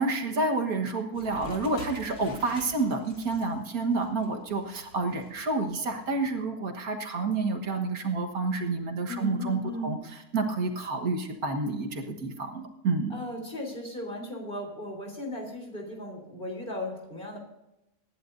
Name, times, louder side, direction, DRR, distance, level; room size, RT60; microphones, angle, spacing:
voice 1, 0.0-10.0 10.3-13.1, right 3 dB, 65° right, 4 dB, 1.9 m, -29 dB
sound 1, 1.1-6.1, left 1 dB, 55° left, 2.9 m, -47 dB
voice 2, 9.1-10.0 13.1-17.4, left 1 dB, 30° left, 1 dB, 3.7 m, -36 dB
24.5 x 11.0 x 2.6 m, 0.90 s
omnidirectional pair, 1.7 m